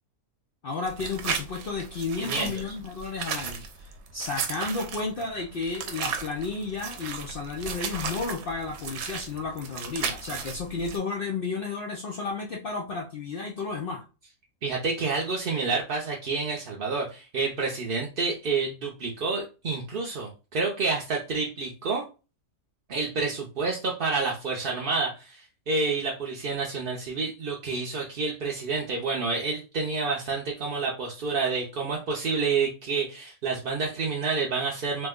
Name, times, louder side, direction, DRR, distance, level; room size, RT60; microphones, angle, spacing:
voice 1, 0.6-14.0, left 4 dB, 75° left, -1 dB, 0.5 m, -32 dB
sound 1, 0.9-11.0, right 6 dB, 70° right, 1.0 m, -35 dB
voice 2, 2.2-2.5 14.6-22.0 22.9-35.1, right 4 dB, 55° right, -2 dB, 0.6 m, -29 dB
3.1 x 2.1 x 3.5 m, 0.32 s
omnidirectional pair, 1.6 m